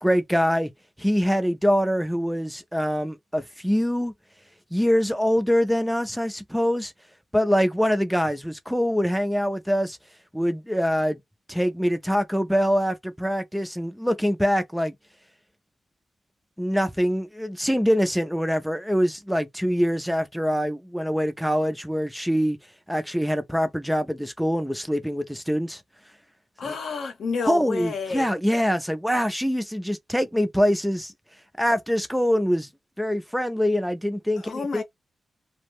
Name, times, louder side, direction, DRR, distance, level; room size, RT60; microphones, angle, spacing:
voice 1, 0.0-0.7 1.0-4.1 4.7-6.9 7.3-10.0 10.3-11.2 11.5-14.9 16.6-22.6 22.9-25.8 26.7-26.8 27.5-31.1 31.6-32.7 33.0-34.8, equal, ahead, 0.3 m, -24 dB
voice 2, 26.6-28.3 34.4-34.8, left 4 dB, 70° left, 0.7 m, -30 dB
2.6 x 2.0 x 3.0 m
wide cardioid pair, 140°, 0 cm